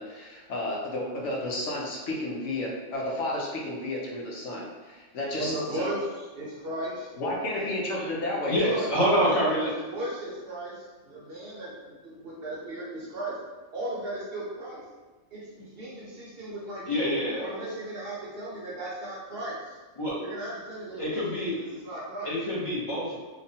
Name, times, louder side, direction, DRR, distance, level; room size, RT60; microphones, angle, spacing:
voice 1, 0.0-5.9 7.2-8.8, left 1 dB, 75° left, -3 dB, 1.0 m, -32 dB
voice 2, 5.4-7.7 8.6-8.9 9.1-9.2 9.6-13.4 13.7-14.8 15.3-17.1 17.4-19.8 20.2-22.3, right 1 dB, 55° right, -6 dB, 0.8 m, -36 dB
voice 3, 8.5-9.7 16.9-17.5 20.0-20.2 21.0-21.5 22.2-23.2, equal, 30° left, -8 dB, 0.7 m, -26 dB
3.1 x 2.2 x 2.7 m, 1.3 s
omnidirectional pair, 1.3 m